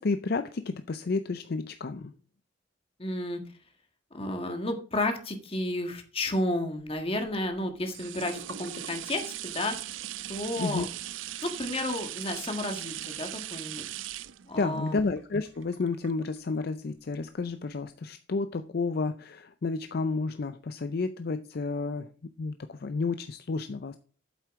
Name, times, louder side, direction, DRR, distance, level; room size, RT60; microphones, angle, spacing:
voice 1, 0.0-2.1 10.6-10.9 14.6-22.1 22.4-24.0, left 3 dB, 55° left, 0.5 m, -31 dB
voice 2, 3.0-3.4 4.1-9.8 10.3-10.9 11.4-13.8 14.5-15.0, left 1 dB, 30° left, 1.5 m, -32 dB
sound 1, 6.9-16.6 17.1-17.2, right 13 dB, 80° right, 0.4 m, -39 dB
8.4 x 7.5 x 3.6 m
head